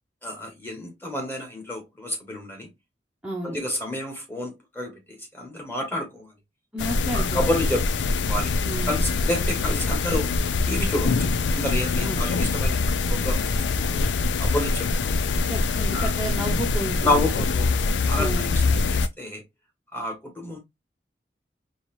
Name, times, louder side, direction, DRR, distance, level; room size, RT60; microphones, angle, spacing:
voice 1, 0.2-2.7 3.4-6.3 7.1-7.8 8.3-8.5 8.9-10.3 10.7-13.6 13.9-14.0 14.4-15.4 15.9-16.1 17.0-17.7 18.1-19.4 19.9-20.6, left 1 dB, 10° left, 1.4 m, -29 dB
voice 2, 3.2-3.6 6.7-7.6 8.6-9.1 12.0-12.3 15.5-17.3 18.1-18.5, right 1 dB, 5° right, 0.8 m, -32 dB
sound 1, 6.8-19.1, left 3 dB, 85° left, 0.4 m, -24 dB
4.1 x 3.0 x 3.0 m
head